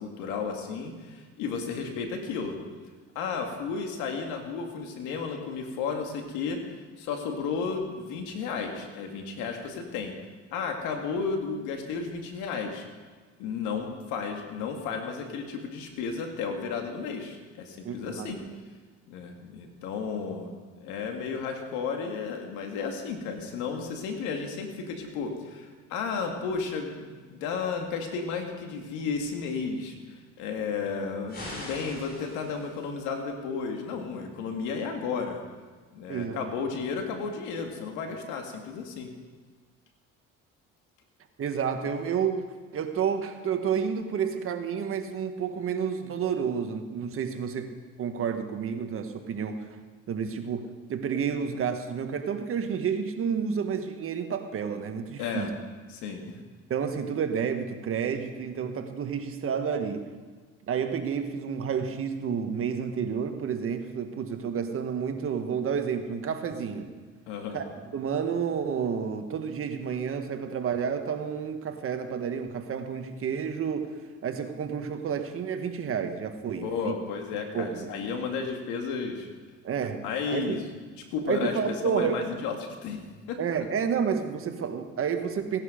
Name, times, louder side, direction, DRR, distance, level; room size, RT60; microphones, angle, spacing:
voice 1, 0.0-2.6 3.2-10.1 10.5-12.9 13.4-18.4 19.1-20.5 20.8-35.4 35.9-39.1 55.2-55.5 55.9-56.3 67.3-67.6 76.6-79.3 80.0-80.6 81.0-83.0 83.3-83.4, left 5 dB, 85° left, 3 dB, 2.2 m, -33 dB
voice 2, 17.8-18.3 36.1-36.5 41.4-49.6 50.1-55.5 56.7-60.1 60.7-66.9 67.5-67.6 67.9-76.9 77.5-77.9 79.6-80.0 80.3-80.6 81.3-82.2 83.4-85.6, right 7 dB, 50° right, 6 dB, 1.5 m, -30 dB
sound 1, 31.3-32.9, left 1 dB, 35° left, 5.3 m, -41 dB
17.0 x 10.5 x 5.2 m, 1.5 s
cardioid pair, 100°, 29 cm